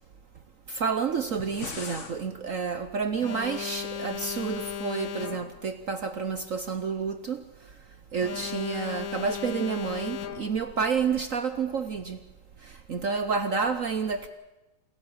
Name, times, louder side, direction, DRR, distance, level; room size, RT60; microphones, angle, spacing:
voice 1, 0.7-7.4 8.1-12.2 12.9-14.3, right 5 dB, 55° right, 11 dB, 0.9 m, -29 dB
sound 1, 1.2-2.2, left 4 dB, 35° left, 1.9 m, -39 dB
Alarm, 3.2-5.7 8.2-10.7, left 8 dB, 50° left, 1.2 m, -36 dB
27.5 x 13.5 x 8.6 m, 1.1 s
omnidirectional pair, 2.3 m